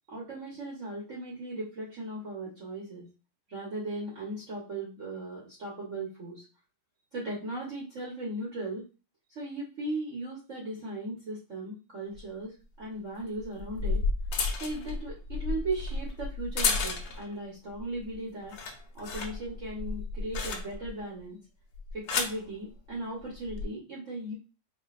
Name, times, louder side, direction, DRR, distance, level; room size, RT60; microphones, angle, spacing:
voice 1, 0.1-3.1 3.5-6.4 7.1-8.8 9.3-14.0 14.6-18.5 18.9-21.4 21.9-24.3, right 2 dB, 55° right, -4 dB, 1.3 m, -37 dB
sound 1, 12.1-12.2 13.4-17.3 17.8-18.1 18.4-21.0 21.7-22.4 23.3-23.6, left 4 dB, 70° left, 1.2 m, -32 dB
4.4 x 2.7 x 2.4 m, 0.31 s
omnidirectional pair, 1.7 m